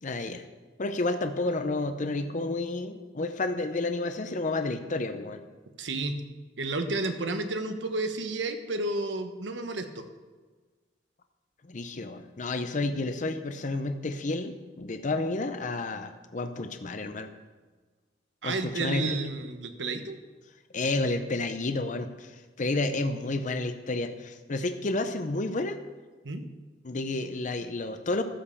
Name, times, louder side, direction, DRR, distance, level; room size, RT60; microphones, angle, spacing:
voice 1, 0.0-0.4 0.8-5.4 11.7-17.3 18.4-19.2 20.7-25.8 26.8-28.2, left 2 dB, 45° left, 8 dB, 0.7 m, -30 dB
voice 2, 5.8-6.2 6.6-10.1 18.4-20.2 26.2-26.5, right 2 dB, 80° right, 8 dB, 1.1 m, -31 dB
13.0 x 5.5 x 7.0 m, 1.4 s
head